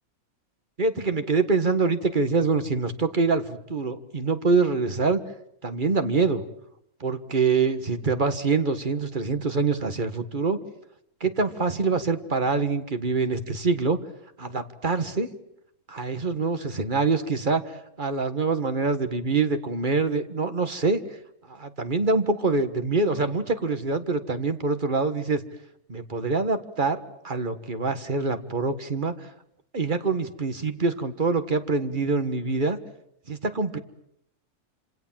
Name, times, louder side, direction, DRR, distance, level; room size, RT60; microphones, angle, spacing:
voice 1, 0.8-5.2 5.6-6.4 7.0-10.6 11.2-14.0 14.4-15.3 15.9-21.0 21.5-25.4 25.9-29.3 29.7-32.8 33.3-33.8, right 4 dB, 35° right, 9 dB, 1.8 m, -25 dB
27.0 x 27.0 x 7.6 m, 0.74 s
omnidirectional pair, 1.5 m